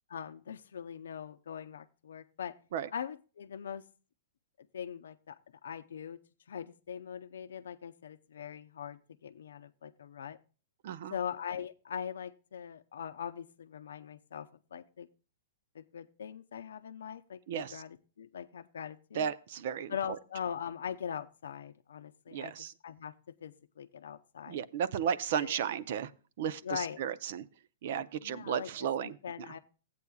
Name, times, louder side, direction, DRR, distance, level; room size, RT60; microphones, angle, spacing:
voice 1, 0.1-2.6 2.9-3.8 4.6-6.2 6.5-10.4 11.1-15.1 15.7-19.3 19.9-22.5 22.8-23.1 23.4-24.6 25.4-25.6 26.6-27.0 28.2-29.6, left 8 dB, 85° left, 7 dB, 0.6 m, -41 dB
voice 2, 10.8-11.1 17.5-17.8 19.1-19.9 22.3-22.7 24.5-26.1 26.4-27.4 27.8-29.2, right 8 dB, 50° right, 15 dB, 0.6 m, -34 dB
15.5 x 8.4 x 2.3 m, 0.35 s
hypercardioid pair, 165°, 0 cm